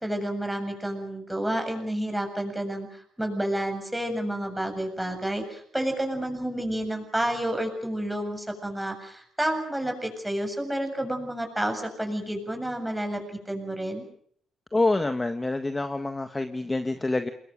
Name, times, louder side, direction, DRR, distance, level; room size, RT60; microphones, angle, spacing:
voice 1, 0.0-14.0, right 1 dB, 5° right, 5 dB, 7.4 m, -30 dB
voice 2, 14.7-17.3, left 2 dB, 20° left, 8 dB, 1.5 m, -26 dB
28.0 x 22.0 x 6.5 m, 0.64 s
cardioid pair, 90°, 0 cm